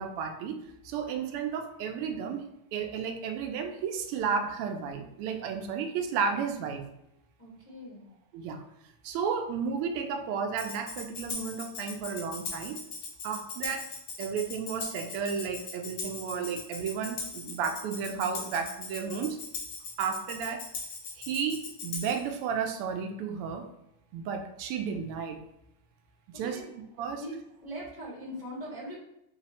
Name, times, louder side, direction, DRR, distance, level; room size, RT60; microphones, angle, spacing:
voice 1, 0.0-2.5 2.7-6.9 8.3-8.6 9.0-12.8 13.2-13.9 14.2-19.4 20.0-20.6 21.2-23.7 24.1-25.4 26.3-26.6 27.0-27.2, right 6 dB, 85° right, 5 dB, 1.5 m, -33 dB
voice 2, 7.4-8.1 26.3-26.7 27.2-27.4 27.6-28.9, equal, 35° left, -8 dB, 0.5 m, -41 dB
Tambourine, 10.6-22.3, left 4 dB, 80° left, 1.6 m, -40 dB
4.2 x 2.0 x 4.1 m, 0.84 s
omnidirectional pair, 2.4 m